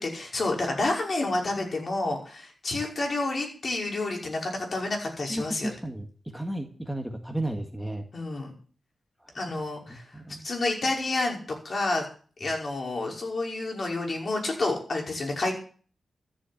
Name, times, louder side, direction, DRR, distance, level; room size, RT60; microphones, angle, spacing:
voice 1, 0.0-5.7 8.1-8.5 9.3-10.0 10.4-11.4 11.6-12.0 12.4-15.5, left 2 dB, 50° left, 0 dB, 5.6 m, -29 dB
voice 2, 5.3-8.1 9.2-9.6 9.9-10.5, right 1 dB, ahead, 3 dB, 1.9 m, -34 dB
13.5 x 7.5 x 8.7 m, 0.41 s
wide cardioid pair, 90°, 0 cm